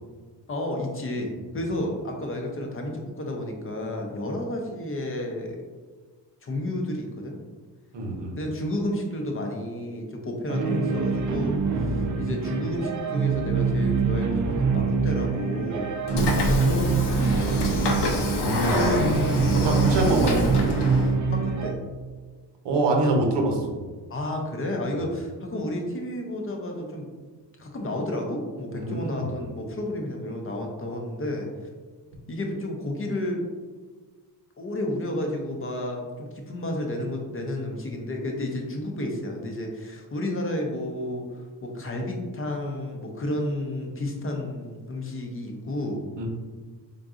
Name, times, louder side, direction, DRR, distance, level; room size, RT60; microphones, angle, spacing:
voice 1, 0.5-5.6 6.4-7.4 8.4-16.0 16.4-17.6 18.8-19.3 21.3-21.8 24.1-27.1 27.6-31.5 32.3-33.4 34.6-46.0, left 1 dB, 30° left, 1 dB, 0.5 m, -31 dB
voice 2, 7.9-8.4 12.0-12.2 16.1-16.4 18.3-18.9 19.6-20.6 22.6-23.7 24.9-25.0 28.7-29.3 46.2-46.3, right 2 dB, 90° right, 1 dB, 0.9 m, -25 dB
sound 1, 10.5-21.7, right 4 dB, 45° right, 0.5 m, -25 dB
Train / Sliding door, 16.1-21.1, left 2 dB, 70° left, 0.7 m, -27 dB
3.8 x 3.8 x 2.4 m, 1.4 s
wide cardioid pair, 150°, 42 cm